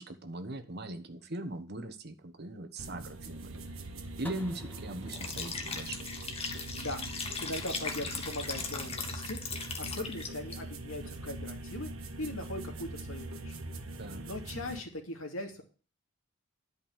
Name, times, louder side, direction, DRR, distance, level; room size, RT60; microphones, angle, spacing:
voice 1, 0.0-3.5 4.2-6.2 14.0-14.2, right 1 dB, 50° right, 9 dB, 1.3 m, -40 dB
sound 1, 2.8-14.8, right 2 dB, 90° right, 1.6 m, -42 dB
sound 2, 4.2-7.1, left 2 dB, 10° left, 1.2 m, -50 dB
Liquid, 5.1-10.5, left 5 dB, 30° left, 1.4 m, -38 dB
voice 2, 7.4-9.4 9.8-11.9 12.2-13.6 14.2-15.6, left 1 dB, 90° left, 3 dB, 2.6 m, -39 dB
11.0 x 5.4 x 7.2 m, 0.37 s
head